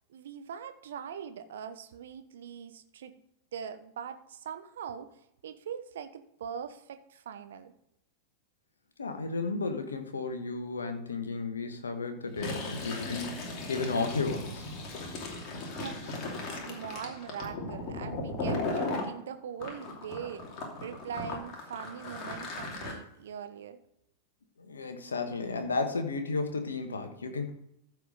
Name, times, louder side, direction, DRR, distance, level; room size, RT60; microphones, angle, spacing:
voice 1, 0.1-3.2 3.5-7.7 15.8-23.8, right 8 dB, 60° right, 10 dB, 0.9 m, -42 dB
voice 2, 9.0-14.6 24.6-27.5, left 3 dB, 75° left, 7 dB, 1.4 m, -33 dB
Fill (with liquid), 12.3-19.1 19.6-22.9, left 2 dB, 35° left, 2.7 m, -37 dB
14.5 x 4.9 x 5.1 m, 0.80 s
figure-of-eight pair, 90°, 0 cm